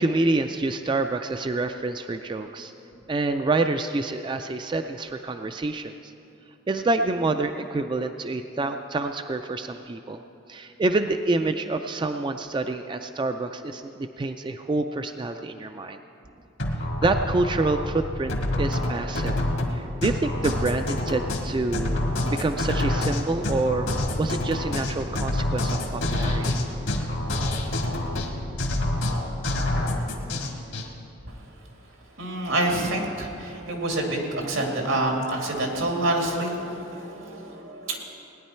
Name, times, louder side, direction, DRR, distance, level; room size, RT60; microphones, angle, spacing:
voice 1, 0.0-2.7 3.1-6.1 6.7-10.2 10.5-16.0 17.0-19.4 19.7-26.6, right 2 dB, 25° right, 7 dB, 0.3 m, -27 dB
sound 1, 16.6-30.9, left 1 dB, 75° left, 1.7 m, -27 dB
voice 2, 32.2-38.0, right 1 dB, 85° right, 0 dB, 2.2 m, -27 dB
18.0 x 10.0 x 4.4 m, 2.7 s
head